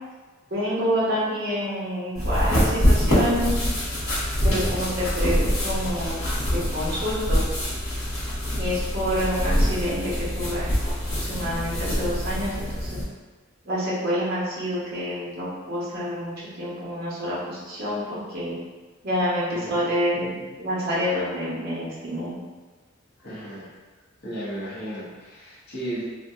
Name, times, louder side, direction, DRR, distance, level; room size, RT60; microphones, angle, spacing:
voice 1, 0.5-3.6 4.4-6.2 6.7-7.4 8.6-13.0 13.6-18.5 19.0-22.3, equal, 45° right, -8 dB, 0.9 m, -28 dB
sound 1, 2.1-13.0, equal, 85° left, 1.2 m, -25 dB
voice 2, 19.5-19.9 23.2-23.7 24.2-26.0, right 1 dB, 50° left, -8 dB, 0.9 m, -35 dB
2.7 x 2.1 x 3.4 m, 1.3 s
head